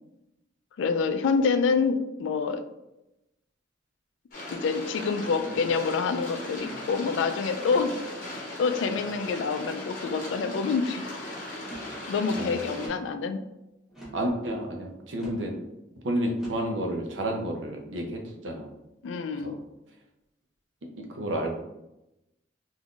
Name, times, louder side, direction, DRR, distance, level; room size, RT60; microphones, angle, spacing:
voice 1, 0.8-2.6 4.5-8.0 8.6-11.2 11.5-11.6 12.1-13.4 19.0-19.6, left 5 dB, 85° left, 9 dB, 0.3 m, -27 dB
sound 1, 4.3-12.9, left 1 dB, 45° left, 0.9 m, -38 dB
sound 2, 5.4-5.9 6.5-7.0 7.6-8.2 8.9-9.3 10.0-10.4 11.5-12.0 12.8-13.2 13.9-14.3 15.1-15.5 16.3-16.7, right 1 dB, 5° right, 0.9 m, -45 dB
voice 2, 14.1-15.6 16.0-18.7 19.4-19.6 21.0-21.6, right 1 dB, 85° right, 2 dB, 0.6 m, -30 dB
3.5 x 2.6 x 2.4 m, 0.92 s
head